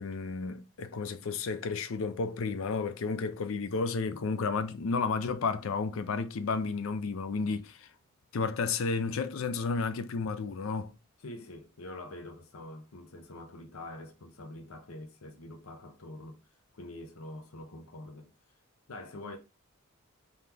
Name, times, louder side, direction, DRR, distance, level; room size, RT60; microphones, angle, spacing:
voice 1, 0.0-7.9 8.3-10.9, left 4 dB, 65° left, 0.4 m, -32 dB
voice 2, 11.2-16.4 16.7-18.3 18.9-19.4, left 1 dB, 85° left, 0.8 m, -45 dB
3.9 x 2.8 x 3.4 m
head